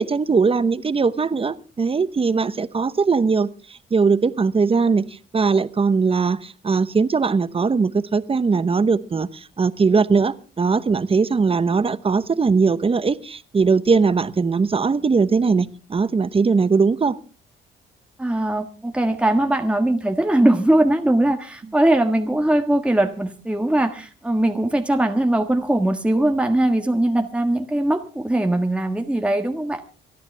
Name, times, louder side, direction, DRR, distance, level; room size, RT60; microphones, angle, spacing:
voice 1, 0.0-17.2, right 4 dB, 30° right, 1.0 m, -20 dB
voice 2, 18.2-29.8, right 1 dB, 5° right, 1.5 m, -20 dB
27.0 x 10.5 x 3.4 m
cardioid pair, 90°, 20 cm